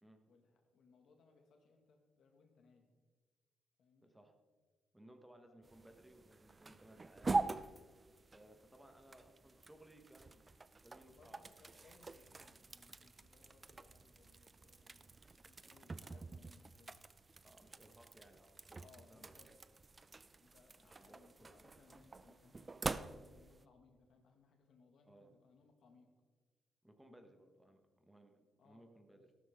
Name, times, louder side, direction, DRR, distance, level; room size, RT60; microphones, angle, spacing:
voice 1, 0.3-2.9 3.8-4.1 5.5-5.7 11.1-17.0 18.8-19.5 20.4-26.1 27.0-27.3 28.6-29.3, left 4 dB, 65° left, 3 dB, 2.1 m, -68 dB
voice 2, 4.0-4.3 4.9-7.3 8.3-10.5 10.8-11.4 17.4-19.5 20.8-21.5 25.1-25.3 26.8-29.3, right 1 dB, 5° right, 5 dB, 1.3 m, -62 dB
sound 1, 5.6-23.7, right 3 dB, 25° right, 0.5 m, -45 dB
13.5 x 12.5 x 3.7 m, 1.4 s
cardioid pair, 90°, 0 cm